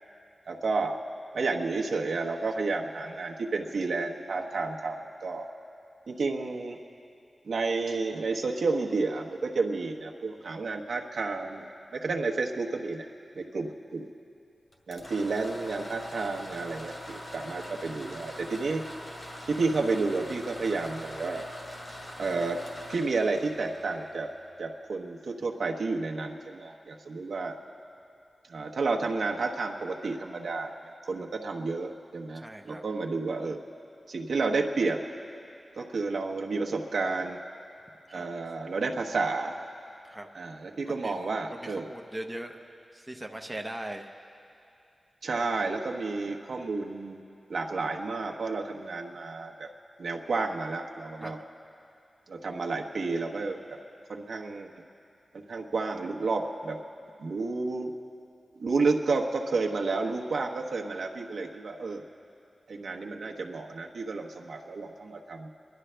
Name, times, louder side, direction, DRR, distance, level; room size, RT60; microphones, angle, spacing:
voice 1, 0.5-1.0 1.3-5.5 6.1-6.8 7.4-13.0 13.3-14.1 14.9-18.8 19.5-21.5 22.2-22.6 22.9-24.3 24.6-27.6 28.5-30.7 31.0-33.6 34.1-35.0 35.8-37.4 38.1-39.6 40.3-41.9 45.2-47.2 47.5-49.7 50.0-51.4 52.3-53.8 54.1-54.7 55.3-56.8 57.2-58.0 58.6-62.0 62.7-65.5, right 3 dB, 80° right, 1 dB, 1.0 m, -31 dB
sound 1, 14.7-24.5, equal, 45° left, 2.0 m, -43 dB
voice 2, 32.3-32.8 38.1-38.3 40.0-40.3 40.8-41.1 41.5-42.6 42.9-44.1 51.2-51.4, right 1 dB, 10° right, 3 dB, 0.7 m, -40 dB
29.5 x 11.5 x 3.4 m, 2.6 s
wide cardioid pair, 135°, 0 cm